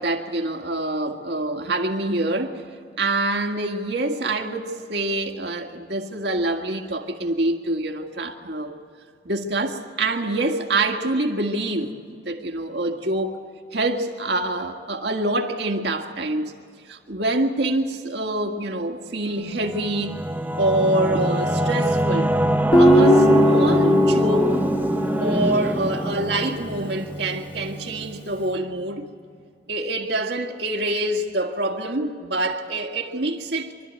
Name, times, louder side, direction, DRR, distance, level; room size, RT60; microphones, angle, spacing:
voice 1, 0.0-2.6 3.0-8.7 9.3-11.9 12.3-13.4 13.7-16.5 16.9-20.2 20.6-22.4 22.8-24.6 25.2-29.1 29.7-33.7, right 2 dB, 70° right, 1.8 m, -25 dB
Singing / Musical instrument, 19.5-28.7, right 1 dB, 10° right, 0.7 m, -24 dB
Guitar, 22.7-26.0, left 1 dB, 30° left, 1.6 m, -18 dB
25.0 x 13.0 x 9.2 m
head